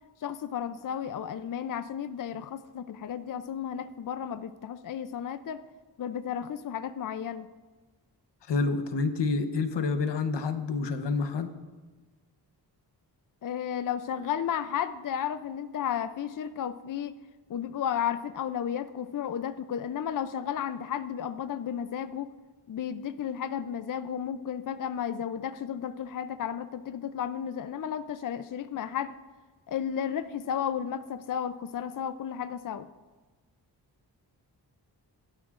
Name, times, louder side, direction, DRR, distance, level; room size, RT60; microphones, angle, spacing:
voice 1, 0.2-5.6 6.0-7.5 13.4-17.1 17.5-22.3 22.7-29.2 29.7-32.9, left 9 dB, 50° left, 11 dB, 0.5 m, -33 dB
voice 2, 8.5-11.5, left 4 dB, 90° left, 8 dB, 1.0 m, -28 dB
16.5 x 12.0 x 2.5 m, 1.3 s
wide cardioid pair, 85°, 41 cm